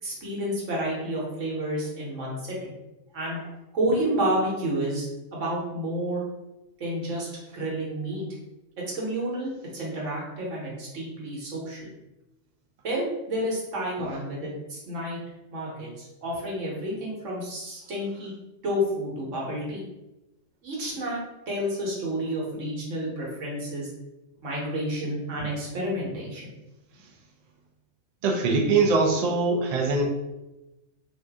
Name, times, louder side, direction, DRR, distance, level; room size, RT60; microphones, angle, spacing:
voice 1, 0.0-2.7 3.1-6.2 6.8-8.2 8.9-11.9 12.8-15.2 15.5-18.3 18.6-19.8 20.6-21.2 21.5-23.9 24.4-26.5, right 1 dB, 90° right, -4 dB, 1.4 m, -30 dB
voice 2, 28.2-30.0, right 3 dB, 50° right, 0 dB, 0.4 m, -22 dB
2.6 x 2.6 x 3.4 m, 0.98 s
omnidirectional pair, 1.3 m